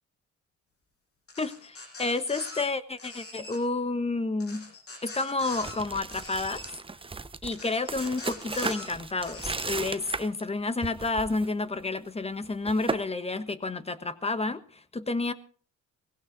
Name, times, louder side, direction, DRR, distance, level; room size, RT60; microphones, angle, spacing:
sound 1, 1.3-2.6 3.0-3.6 4.4-5.7 6.1-6.7 7.5-8.9 9.2-9.8, left 3 dB, 50° left, 6.8 m, -43 dB
voice 1, 1.4-4.7 5.0-6.6 7.4-15.3, left 3 dB, 20° left, 12 dB, 1.3 m, -30 dB
sound 2, 5.4-10.5 10.8-11.5 11.8-12.0 12.4-13.0, right 4 dB, 20° right, 0.8 m, -36 dB
18.5 x 16.5 x 3.9 m, 0.43 s
cardioid pair, 90°, 30 cm